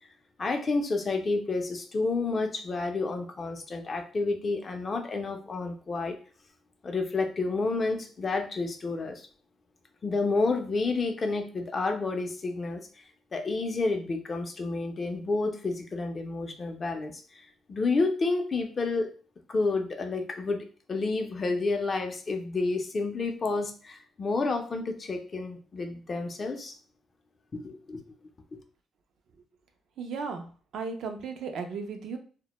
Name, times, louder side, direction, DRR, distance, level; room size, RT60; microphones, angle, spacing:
voice 1, 0.4-6.1 6.8-9.3 10.0-13.0 13.3-19.1 19.5-26.7 27.5-28.0, left 3 dB, 40° left, 5 dB, 0.4 m, -30 dB
voice 2, 30.0-30.4 30.7-32.2, right 5 dB, 70° right, 5 dB, 0.4 m, -35 dB
2.1 x 2.0 x 2.9 m, 0.40 s
cardioid pair, 90°, 0 cm